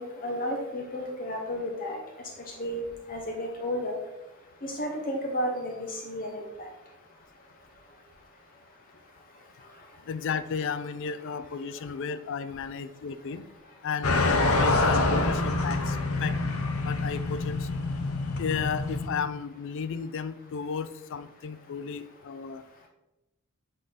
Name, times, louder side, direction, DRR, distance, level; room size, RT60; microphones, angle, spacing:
voice 1, 0.0-2.0 2.6-2.8 3.1-4.0 4.6-6.7, equal, 40° left, 1 dB, 0.7 m, -32 dB
voice 2, 10.1-13.5 13.8-16.4 16.8-17.7 18.4-22.6, left 6 dB, 60° left, 13 dB, 0.4 m, -33 dB
sound 1, 14.0-19.1, left 2 dB, 90° left, 0.7 m, -26 dB
7.6 x 3.8 x 3.3 m, 0.96 s
head